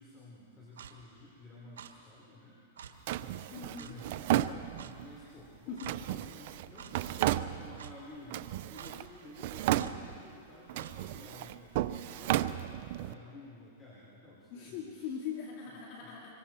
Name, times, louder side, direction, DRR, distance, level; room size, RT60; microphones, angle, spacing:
voice 1, 0.0-2.6 3.1-4.3 4.8-15.1 16.0-16.2, left 2 dB, 20° left, -6 dB, 4.3 m, -53 dB
Clock, 0.8-0.9 1.8-1.9 2.8-2.9 3.8-3.9 4.8-4.9 5.8-5.9 6.8-6.9 7.8-7.9 8.8-8.9 9.8-9.9 10.8-10.9, right 8 dB, 80° right, 1.6 m, -48 dB
Drawer open or close, 3.1-5.1 5.9-7.9 8.3-9.1 9.4-10.3 10.7-13.1, right 13 dB, 55° right, 0.6 m, -33 dB
voice 2, 3.5-3.9 5.7-5.9 14.5-16.3, left 7 dB, 50° left, -1 dB, 2.7 m, -41 dB
26.0 x 23.0 x 4.5 m, 2.5 s
hypercardioid pair, 130°, 0 cm